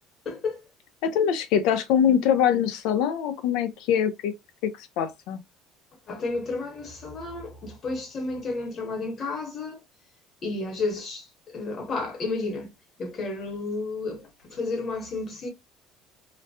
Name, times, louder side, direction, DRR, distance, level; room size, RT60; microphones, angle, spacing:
voice 1, 0.2-0.6 6.1-9.8 10.4-12.7 13.0-15.5, left 3 dB, 35° left, 1.3 m, -32 dB
voice 2, 1.0-4.3 4.6-5.4, left 8 dB, 75° left, 0.7 m, -23 dB
3.0 x 2.2 x 2.7 m
cardioid pair, 125°, 0 cm